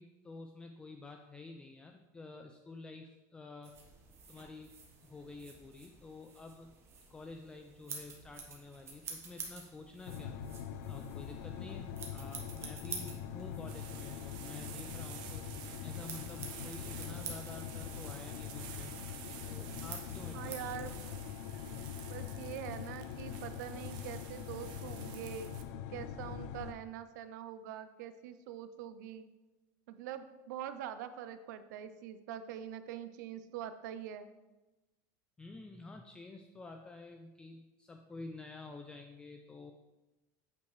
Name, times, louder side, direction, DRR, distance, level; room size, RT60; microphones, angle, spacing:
voice 1, 0.0-3.8 4.3-4.7 5.0-6.7 7.1-10.3 10.9-18.9 19.5-20.7 35.4-39.7, left 3 dB, 10° left, 4 dB, 0.3 m, -50 dB
sound 1, 3.6-21.0, right 5 dB, 30° right, 1.1 m, -50 dB
sound 2, 10.1-26.7, left 9 dB, 75° left, 0.5 m, -43 dB
sound 3, 13.7-25.6, right 9 dB, 50° right, 0.7 m, -51 dB
voice 2, 20.3-21.0 22.1-25.5 25.9-29.3 29.9-34.3, right 10 dB, 85° right, 11 dB, 0.5 m, -44 dB
8.4 x 4.5 x 3.2 m, 1.1 s
supercardioid pair, 150°, 9 cm